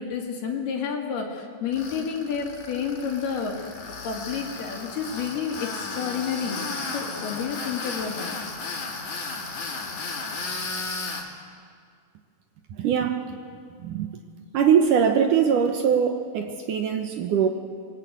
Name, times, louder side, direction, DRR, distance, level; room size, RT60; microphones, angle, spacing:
voice 1, 0.0-3.7 4.0-6.6 6.9-8.4, left 6 dB, 80° left, 0 dB, 4.2 m, -30 dB
Tools, 1.7-11.2, left 3 dB, 50° left, 3.8 m, -34 dB
voice 2, 12.7-13.4 13.8-14.1 14.5-17.5, right 7 dB, 65° right, 5 dB, 2.3 m, -22 dB
26.0 x 21.5 x 8.2 m, 2.1 s
omnidirectional pair, 4.5 m